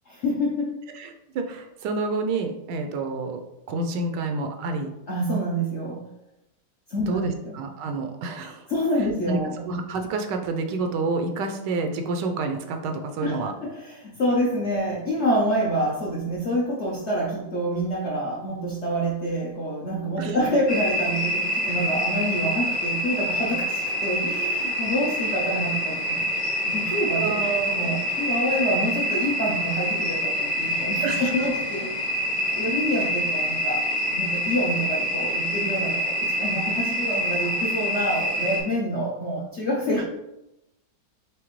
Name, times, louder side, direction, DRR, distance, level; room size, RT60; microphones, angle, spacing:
voice 1, 0.1-0.7 5.1-6.0 6.9-7.5 8.7-9.6 13.2-26.3 26.7-31.9 32.5-33.8 34.1-40.0, equal, 60° left, -4 dB, 0.7 m, -27 dB
voice 2, 1.0-3.4 3.7-4.9 7.1-8.7 9.3-9.4 9.7-13.5 20.2-20.4 27.2-28.0 31.0-31.5 40.0-40.1, right 3 dB, 75° right, 5 dB, 1.2 m, -29 dB
sound 1, 20.7-38.6, equal, 85° left, 2.3 m, -26 dB
4.9 x 3.4 x 3.0 m, 0.89 s
omnidirectional pair, 2.0 m